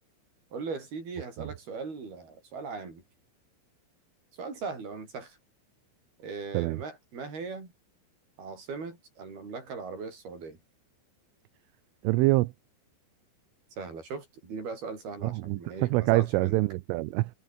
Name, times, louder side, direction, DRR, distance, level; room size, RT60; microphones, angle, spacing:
voice 1, 0.5-3.0 4.3-5.4 6.2-7.7 8.4-10.6 13.8-16.6, right 4 dB, 50° right, 9.2 m, -39 dB
voice 2, 12.0-12.5 15.2-17.3, right 20 dB, 85° right, 3.2 m, -25 dB
omnidirectional pair, 5.9 m